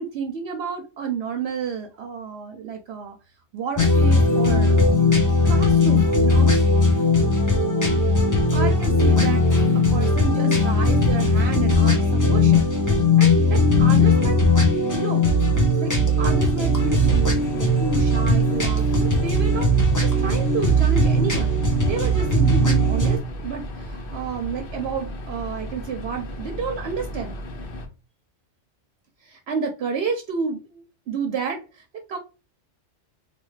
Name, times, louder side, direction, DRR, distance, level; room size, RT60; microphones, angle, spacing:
voice 1, 0.0-3.2 3.5-4.8 5.4-6.5 8.5-9.4 9.7-14.4 14.9-15.2 15.8-27.4 29.2-32.2, right 6 dB, 65° right, 4 dB, 0.8 m, -30 dB
sound 1, 3.8-23.2, left 2 dB, 20° left, 0.7 m, -18 dB
sound 2, 16.8-27.9, equal, 55° left, 0.9 m, -35 dB
3.2 x 2.7 x 3.1 m, 0.31 s
omnidirectional pair, 1.2 m